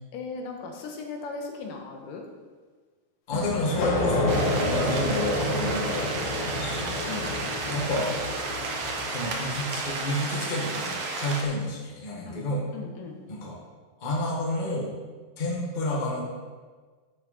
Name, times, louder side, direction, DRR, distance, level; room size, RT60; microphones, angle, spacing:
voice 1, 0.1-2.2 5.6-5.9 7.1-7.4 12.2-13.2, left 4 dB, 80° left, 2 dB, 2.8 m, -38 dB
sound 1, 3.3-9.7, left 1 dB, 55° left, 2.3 m, -29 dB
voice 2, 3.3-7.0 7.7-8.2 9.1-12.7 13.3-13.6 14.0-14.9 15.4-16.3, left 1 dB, 20° left, -3 dB, 1.2 m, -30 dB
sound 2, 4.3-11.4, right 3 dB, 55° right, 1.5 m, -32 dB
10.5 x 9.4 x 4.2 m, 1.5 s
omnidirectional pair, 3.8 m